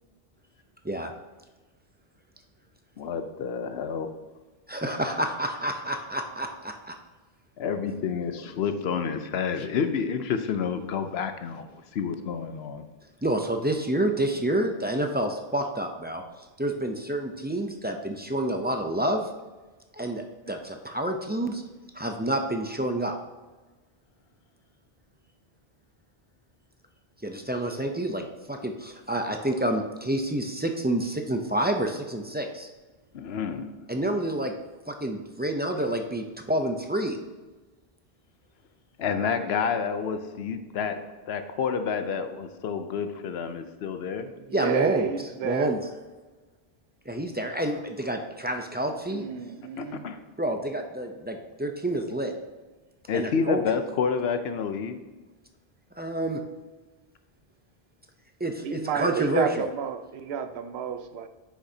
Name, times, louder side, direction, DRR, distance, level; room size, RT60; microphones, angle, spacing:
voice 1, 3.0-4.1 7.6-11.7 11.9-12.9 33.1-33.7 39.0-41.0 41.3-44.3 49.8-50.2 53.1-55.0, left 6 dB, 80° left, 8 dB, 0.9 m, -29 dB
voice 2, 4.7-7.0 13.2-16.2 16.6-19.3 19.9-21.6 21.9-23.1 27.2-32.7 33.9-34.5 34.9-37.2 44.5-45.1 45.4-45.8 47.1-49.2 50.4-52.3 53.1-53.6 56.0-56.4 58.4-59.7, right 1 dB, 15° right, 4 dB, 0.3 m, -28 dB
voice 3, 44.4-45.7 49.1-50.1 58.6-61.3, right 7 dB, 85° right, 9 dB, 0.9 m, -30 dB
9.8 x 6.2 x 2.7 m, 1.2 s
omnidirectional pair, 1.0 m